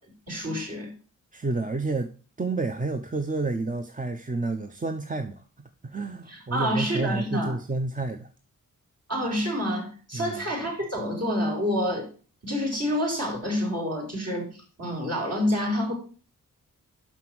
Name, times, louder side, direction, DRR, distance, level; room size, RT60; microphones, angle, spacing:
voice 1, 0.3-0.9 6.3-7.6 9.1-12.1 12.4-15.9, equal, 50° right, 4.2 m, -28 dB
voice 2, 1.3-2.1 2.4-5.4 5.8-8.3 10.1-10.4, right 3 dB, 25° right, 0.7 m, -30 dB
5.9 x 5.7 x 6.1 m
cardioid pair, 65°, 32 cm